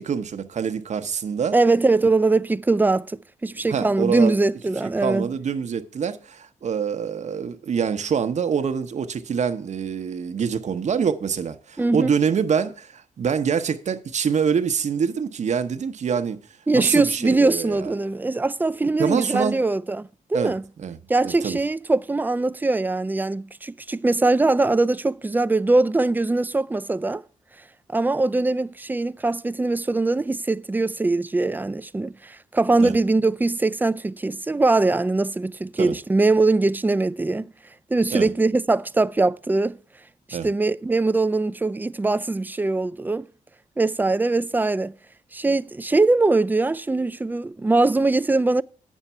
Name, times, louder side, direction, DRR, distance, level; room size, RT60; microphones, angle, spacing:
voice 1, 0.0-1.6 3.7-4.4 5.0-16.4 16.7-17.9 19.0-19.6 20.3-20.5 20.8-21.0 21.2-21.6 32.8-32.9 35.8-36.0 38.1-38.3 40.3-40.5, right 7 dB, 60° right, 0.9 m, -25 dB
voice 2, 1.5-5.3 11.8-12.1 16.7-20.6 21.1-27.2 27.9-37.5 37.9-39.8 40.3-43.3 43.8-44.9 45.3-48.6, right 2 dB, 15° right, 0.4 m, -22 dB
9.0 x 7.3 x 5.6 m
cardioid pair, 85°, 14 cm